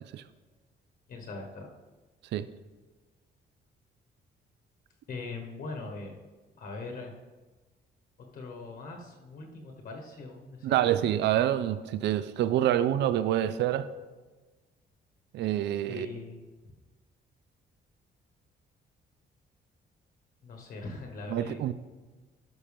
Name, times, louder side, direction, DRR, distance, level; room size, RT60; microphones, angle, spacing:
voice 1, 1.1-1.7 5.1-6.2 6.6-7.2 8.3-11.1 15.8-16.4 20.4-21.6, left 3 dB, 55° left, 1.2 m, -41 dB
voice 2, 10.6-13.9 15.3-16.1 21.3-21.7, right 12 dB, 70° right, 0.4 m, -27 dB
12.0 x 5.8 x 3.5 m
cardioid pair, 170°, 18 cm